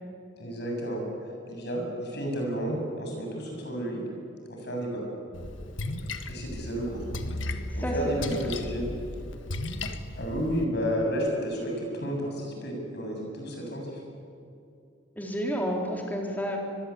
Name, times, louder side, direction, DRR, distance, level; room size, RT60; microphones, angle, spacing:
voice 1, 0.4-1.0 1.5-4.0 4.5-5.0 6.3-7.0 7.7-8.9 10.2-14.0, equal, 60° left, 1 dB, 7.4 m, -31 dB
Splash splatter, 5.3-10.6, left 1 dB, 75° left, 1.6 m, -35 dB
voice 2, 15.2-16.6, equal, 10° left, 0 dB, 3.8 m, -30 dB
25.0 x 22.5 x 8.5 m, 2.5 s
head